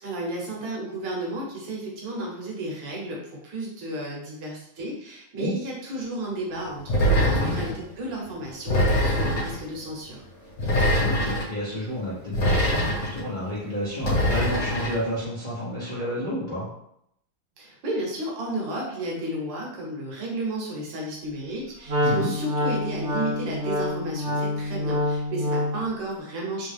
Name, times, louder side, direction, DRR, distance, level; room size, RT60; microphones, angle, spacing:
voice 1, 0.0-10.2 17.6-26.7, right 1 dB, 65° right, -2 dB, 1.4 m, -33 dB
sound 1, 6.9-7.8 8.7-9.6 10.6-11.5 12.3-13.2 14.0-15.0, equal, 50° left, 1.4 m, -23 dB
voice 2, 11.0-16.7 22.0-22.3, equal, 80° left, -9 dB, 0.4 m, -31 dB
Wind instrument woodwind instrument, 21.9-25.9, left 1 dB, 45° right, 1.0 m, -26 dB
3.6 x 2.3 x 3.2 m, 0.75 s
omnidirectional pair, 2.4 m